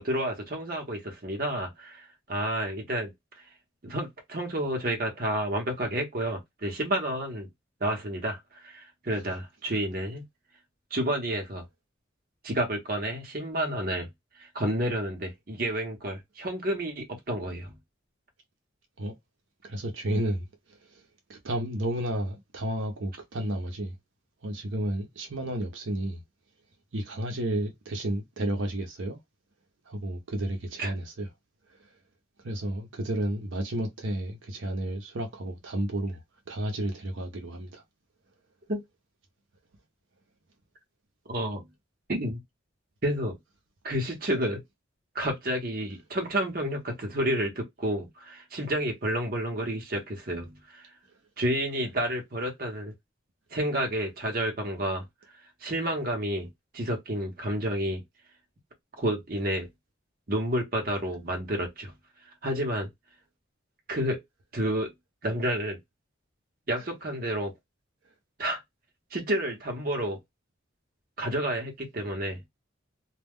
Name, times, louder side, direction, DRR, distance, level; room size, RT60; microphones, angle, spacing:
voice 1, 0.0-3.1 3.8-7.5 7.8-10.2 10.9-11.6 12.4-14.1 14.4-17.8 30.8-30.9 38.7-38.8 41.3-41.6 42.1-42.4 43.0-43.4 43.8-44.6 45.1-50.8 51.4-52.9 53.5-55.0 55.6-56.5 56.7-58.0 59.0-59.7 60.3-61.9 62.4-62.9 63.9-64.2 64.5-64.9 65.2-65.8 66.7-67.5 68.4-68.6 69.1-70.2 71.2-72.4, right 1 dB, 45° right, 0.8 m, -30 dB
voice 2, 19.6-20.4 20.9-21.0 21.3-23.9 24.4-26.2 26.9-29.2 29.9-31.3 32.4-36.2 36.5-37.8, right 1 dB, 80° right, 0.7 m, -31 dB
2.2 x 2.1 x 3.5 m
head